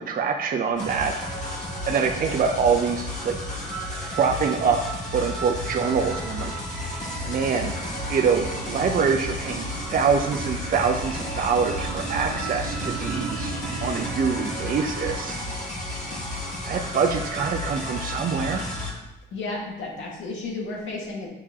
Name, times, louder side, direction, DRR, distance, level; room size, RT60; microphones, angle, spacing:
voice 1, 0.0-1.5 1.9-3.4 4.2-6.9 7.2-7.7 8.1-15.4 16.6-18.6, right 6 dB, 45° right, 2 dB, 0.6 m, -25 dB
sound 1, 0.7-15.2, right 4 dB, 85° right, 0.8 m, -39 dB
sound 2, 0.8-18.9, left 1 dB, 40° left, 1.6 m, -32 dB
voice 2, 19.3-21.3, left 3 dB, 75° left, -2 dB, 1.9 m, -32 dB
6.6 x 6.1 x 2.9 m, 0.99 s
cardioid pair, 90°, 20 cm